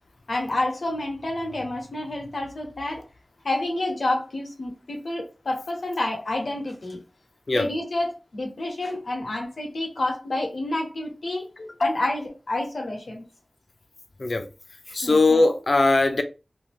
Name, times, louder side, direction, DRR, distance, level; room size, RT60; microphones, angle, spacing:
voice 1, 0.3-3.0 3.4-7.0 7.5-11.5 11.8-13.2 15.0-15.2, left 2 dB, 85° left, 1.1 m, -29 dB
voice 2, 11.6-11.9 14.2-14.5 14.9-16.2, left 3 dB, 65° left, 0.5 m, -20 dB
2.9 x 2.8 x 3.6 m
wide cardioid pair, 50°, 0 cm